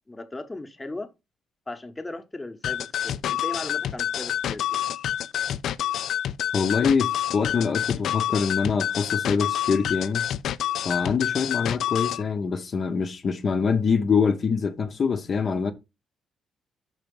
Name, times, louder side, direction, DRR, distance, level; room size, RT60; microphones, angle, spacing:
voice 1, 0.1-1.1 1.7-4.9, left 2 dB, 15° left, 1.0 m, -37 dB
sound 1, 2.6-12.2, left 11 dB, 70° left, 0.4 m, -28 dB
voice 2, 6.5-10.2 10.8-15.7, left 5 dB, 45° left, 0.8 m, -24 dB
5.7 x 4.7 x 5.3 m
cardioid pair, 90°, 0 cm